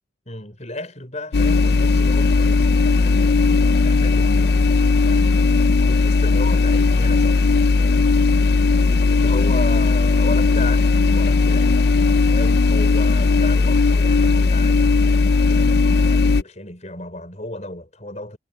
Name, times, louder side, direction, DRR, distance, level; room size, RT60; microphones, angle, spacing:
voice 1, 0.3-4.6 5.0-7.4 7.8-8.1 9.1-10.9 11.1-11.8 12.3-18.4, left 2 dB, 40° left, 5.6 m, -34 dB
sound 1, 1.3-16.4, left 3 dB, 55° left, 0.5 m, -17 dB
head